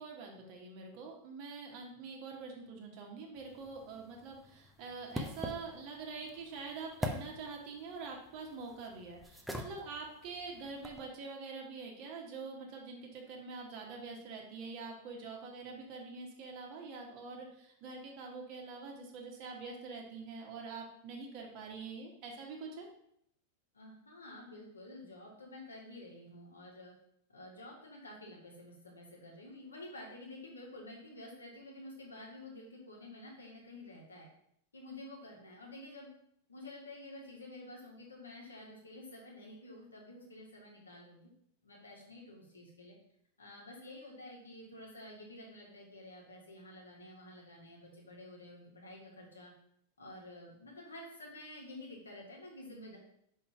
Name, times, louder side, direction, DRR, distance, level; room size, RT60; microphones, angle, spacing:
voice 1, 0.0-22.9, right 4 dB, 45° right, 0 dB, 1.4 m, -45 dB
sound 1, 3.4-11.1, equal, ahead, 0.7 m, -45 dB
voice 2, 23.7-26.9 27.3-34.3 34.7-36.1 36.5-41.3 41.6-42.9 43.4-49.5 50.0-53.0, left 1 dB, 75° left, -2 dB, 1.7 m, -50 dB
5.6 x 3.8 x 4.9 m, 0.71 s
figure-of-eight pair, 90°, 0 cm